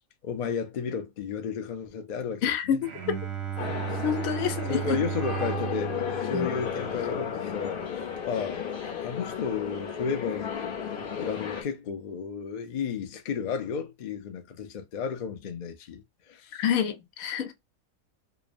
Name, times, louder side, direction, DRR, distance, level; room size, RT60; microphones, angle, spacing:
voice 1, 0.2-2.8 3.9-4.0 4.7-7.8 8.2-10.7 11.2-16.6, left 6 dB, 65° left, 0.4 m, -33 dB
voice 2, 2.4-2.9 4.0-5.0 6.3-6.5 16.5-17.5, left 8 dB, 90° left, 1.0 m, -28 dB
Bowed string instrument, 2.8-8.1, right 9 dB, 60° right, 0.7 m, -35 dB
sound 1, 3.6-11.6, left 7 dB, 50° left, 0.8 m, -34 dB
2.9 x 2.0 x 2.5 m
omnidirectional pair, 1.4 m